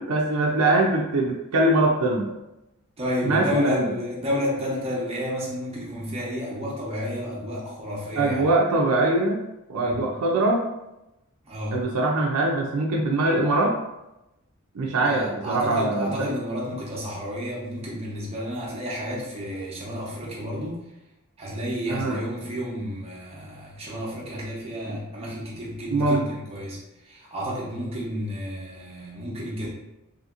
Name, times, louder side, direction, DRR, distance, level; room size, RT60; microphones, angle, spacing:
voice 1, 0.0-2.3 3.2-3.8 8.2-9.4 9.7-10.6 11.7-13.7 14.7-16.3 21.9-22.2 24.9-25.0 25.9-26.2, right 2 dB, 85° right, -2 dB, 0.4 m, -22 dB
voice 2, 3.0-8.5 9.8-10.1 11.5-11.8 15.0-20.8 21.4-29.7, equal, 30° right, -5 dB, 0.8 m, -31 dB
2.8 x 2.7 x 2.4 m, 0.93 s
head